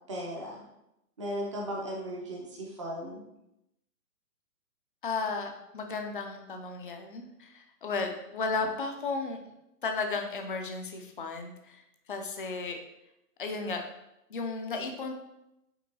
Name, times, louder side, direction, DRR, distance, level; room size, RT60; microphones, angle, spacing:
voice 1, 0.1-0.6 1.2-3.2, equal, 20° right, -2 dB, 0.5 m, -36 dB
voice 2, 5.0-9.4 9.8-11.8 12.1-12.8 13.4-13.8 14.3-15.1, left 4 dB, 35° left, 4 dB, 0.4 m, -34 dB
5.3 x 3.4 x 2.7 m, 0.86 s
hypercardioid pair, 145°, 47 cm